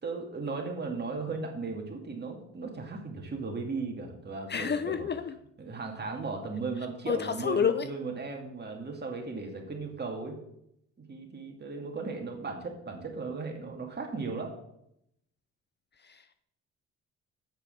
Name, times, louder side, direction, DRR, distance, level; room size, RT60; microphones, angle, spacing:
voice 1, 0.0-5.1 5.6-10.4 11.0-14.5, right 4 dB, 35° right, 2 dB, 2.5 m, -36 dB
voice 2, 4.5-5.4 7.1-7.9 16.0-16.4, left 7 dB, 35° left, 11 dB, 0.6 m, -29 dB
7.9 x 6.7 x 6.6 m, 0.77 s
cardioid pair, 90°, 30 cm